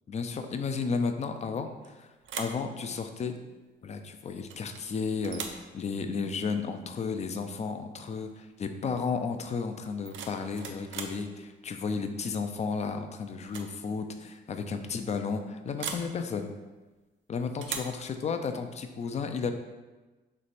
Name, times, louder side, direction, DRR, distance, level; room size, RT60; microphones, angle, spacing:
voice 1, 0.1-2.1 2.4-3.3 3.8-16.5 17.3-19.5, left 5 dB, 35° left, 7 dB, 0.4 m, -33 dB
sound 1, 1.6-1.9 2.2-2.7 4.5-4.9 5.2-5.7 7.5-7.7 8.0-8.4 9.8-11.2 12.7-13.0 13.4-13.7 14.0-14.1 15.8-16.1 17.6-18.0, right 6 dB, 70° right, 0.5 m, -39 dB
3.2 x 3.2 x 4.1 m, 1.2 s
cardioid pair, 90°, 20 cm